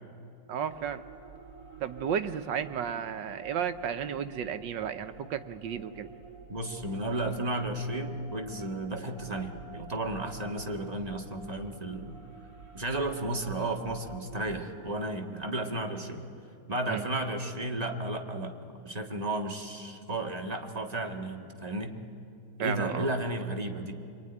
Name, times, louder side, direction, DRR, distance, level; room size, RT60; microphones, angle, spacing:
voice 1, 0.5-1.0 1.8-6.1 16.9-17.0 22.6-23.1, right 8 dB, 85° right, 10 dB, 1.7 m, -33 dB
sound 1, 0.7-14.7, right 4 dB, 55° right, 3.5 m, -49 dB
voice 2, 6.5-12.2 12.7-16.3 16.7-18.6 18.8-22.0 22.6-23.9, right 1 dB, 20° right, 3 dB, 1.9 m, -33 dB
25.5 x 23.5 x 9.9 m, 2.6 s
omnidirectional pair, 1.9 m